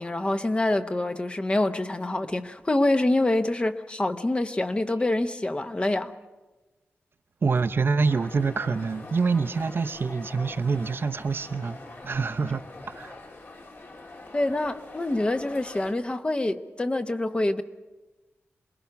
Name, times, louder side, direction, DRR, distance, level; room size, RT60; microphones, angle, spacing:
voice 1, 0.0-6.1 14.3-17.6, left 2 dB, 25° left, 0.9 m, -26 dB
voice 2, 7.4-13.2, right 4 dB, 50° right, 0.8 m, -26 dB
sound 1, 8.1-15.9, left 2 dB, 50° left, 2.1 m, -44 dB
27.0 x 21.0 x 5.9 m
wide cardioid pair, 105°, 5 cm